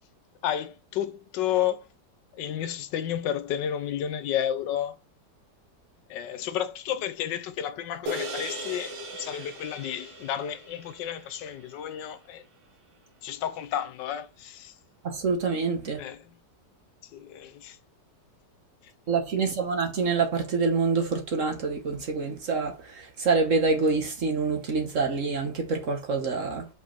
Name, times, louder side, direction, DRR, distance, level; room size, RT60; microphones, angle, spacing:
voice 1, 0.4-1.8 2.3-5.0 6.1-12.4 13.2-14.7 16.0-16.4 17.1-17.8, left 10 dB, 75° left, 1.3 m, -31 dB
sound 1, 8.1-12.6, equal, 85° right, 1.9 m, -38 dB
voice 2, 15.0-16.0 19.1-26.7, right 4 dB, 50° right, 1.3 m, -26 dB
5.2 x 5.0 x 4.4 m
omnidirectional pair, 2.0 m